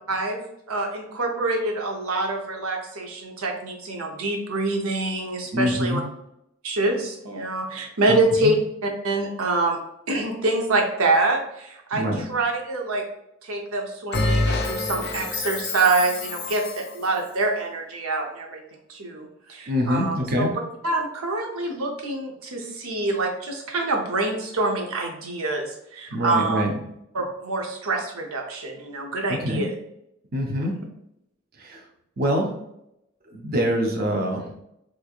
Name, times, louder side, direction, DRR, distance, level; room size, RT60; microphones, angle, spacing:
voice 1, 0.1-0.4 0.7-6.0 6.6-8.6 8.8-9.8 10.1-13.0 13.4-18.6 18.9-20.5 20.8-26.6 27.1-29.7 30.6-30.7, right 2 dB, 85° right, 2 dB, 0.7 m, -26 dB
voice 2, 5.5-6.0 8.1-8.2 8.4-8.5 11.9-12.2 19.7-20.5 26.1-26.7 29.3-29.7 30.3-30.8 31.6-31.8 32.2-32.6 33.3-34.6, equal, 45° right, 1 dB, 0.6 m, -25 dB
Bell, 14.1-16.9, left 2 dB, 50° left, 0.4 m, -26 dB
3.5 x 3.2 x 2.4 m, 0.80 s
head